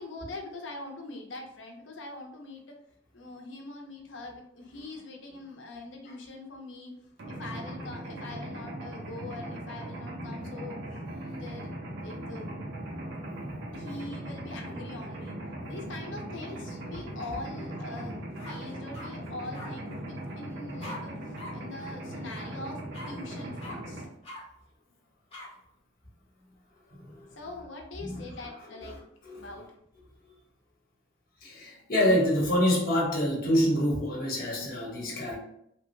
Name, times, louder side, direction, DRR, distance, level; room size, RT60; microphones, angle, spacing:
voice 1, 0.0-2.8 3.1-6.9 7.3-10.8 11.3-11.7 12.0-12.5 13.7-15.3 15.7-18.2 18.4-21.1 21.5-22.8 23.1-24.0 27.4-29.0 29.3-29.7, left 2 dB, 65° left, 1 dB, 0.7 m, -42 dB
Mechanisms, 7.2-24.0, right 1 dB, 60° right, 0.7 m, -39 dB
sound 1, 17.9-18.1 18.4-19.1 19.5-19.7 20.8-21.0 21.4-21.5 21.8-21.9 22.3-22.5 22.9-23.1 23.6-23.8 24.2-24.4 25.3-25.5, left 1 dB, 30° left, 1.0 m, -42 dB
voice 2, 26.9-27.3 28.0-28.5 28.8-28.9 29.2-29.5 31.4-35.4, equal, 50° left, -3 dB, 1.1 m, -27 dB
3.3 x 2.1 x 3.1 m, 0.74 s
head